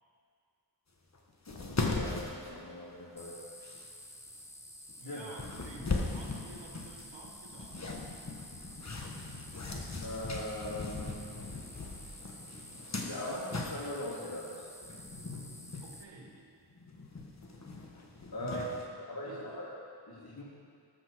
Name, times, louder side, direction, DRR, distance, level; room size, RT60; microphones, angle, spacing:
sound 1, 1.1-1.2 1.5-3.2 3.6-3.9 4.9-5.0 5.4-14.1 14.8-15.9 16.3-16.4 16.7-18.9, left 3 dB, 40° left, 1.3 m, -39 dB
voice 1, 1.5-3.4 5.0-5.4 10.0-11.3 13.0-14.6 18.3-18.6 19.1-19.7 20.1-20.4, left 1 dB, 55° left, -13 dB, 3.1 m, -40 dB
sound 2, 3.2-16.0, left 1 dB, 5° left, 0.8 m, -51 dB
voice 2, 5.0-8.0 15.8-16.5 18.4-18.8 19.3-19.7, right 2 dB, 90° right, 0 dB, 1.5 m, -50 dB
13.5 x 5.5 x 6.1 m, 2.4 s
wide cardioid pair, 60°, 43 cm